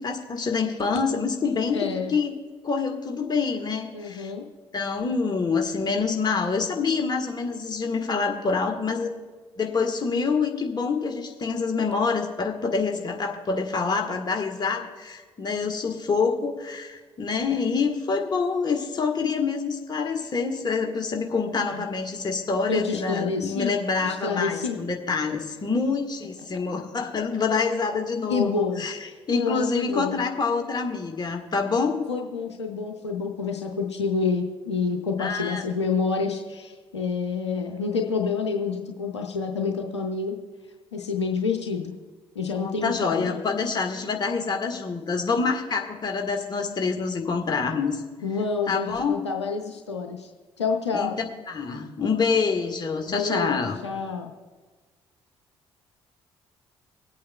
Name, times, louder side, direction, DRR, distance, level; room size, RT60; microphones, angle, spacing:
voice 1, 0.0-2.3 2.6-4.3 4.7-9.1 9.6-29.0 29.3-32.1 35.2-35.6 42.6-48.0 48.7-49.2 50.9-51.1 51.5-53.8, left 4 dB, 30° left, 4 dB, 1.3 m, -26 dB
voice 2, 1.7-2.1 3.9-4.5 21.6-21.9 22.7-23.7 24.0-24.8 28.3-30.2 32.1-40.4 40.9-41.9 42.4-43.4 48.2-50.3 50.6-51.2 53.1-54.3, left 5 dB, 85° left, 2 dB, 0.6 m, -28 dB
24.5 x 8.4 x 2.2 m, 1.4 s
figure-of-eight pair, 45°, 14 cm